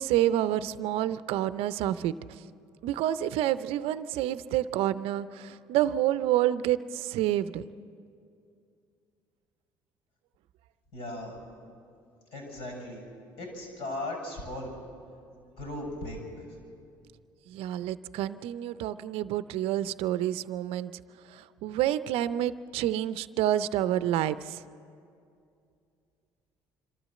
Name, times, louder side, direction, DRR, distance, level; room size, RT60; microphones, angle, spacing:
voice 1, 0.0-2.4 2.8-7.6 17.5-24.6, right 12 dB, 70° right, 14 dB, 0.5 m, -28 dB
voice 2, 10.9-11.3 12.3-13.0 13.4-14.7 15.3-16.2, left 1 dB, 70° left, 1 dB, 7.2 m, -37 dB
26.5 x 13.0 x 7.6 m, 2.5 s
hypercardioid pair, 60°, 10 cm